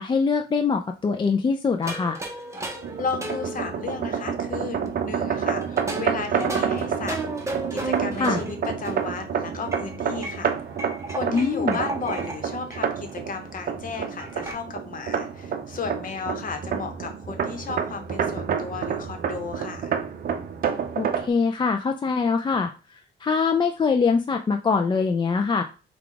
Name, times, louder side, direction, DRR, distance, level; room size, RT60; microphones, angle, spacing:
voice 1, 0.0-2.2 8.2-8.4 11.3-11.7 21.0-22.7 23.2-25.6, left 5 dB, 25° left, 4 dB, 0.4 m, -23 dB
sound 1, 1.8-4.9 5.5-9.2 9.7-12.4 12.7-12.9 13.1-13.2 13.4-14.5, right 2 dB, 15° right, 1.0 m, -34 dB
sound 2, 2.8-21.3, right 7 dB, 50° right, 0.6 m, -29 dB
voice 2, 3.0-7.2 7.7-10.5 11.1-19.9, left 5 dB, 45° left, 5 dB, 1.0 m, -34 dB
4.7 x 2.4 x 3.7 m, 0.34 s
cardioid pair, 95°, 19 cm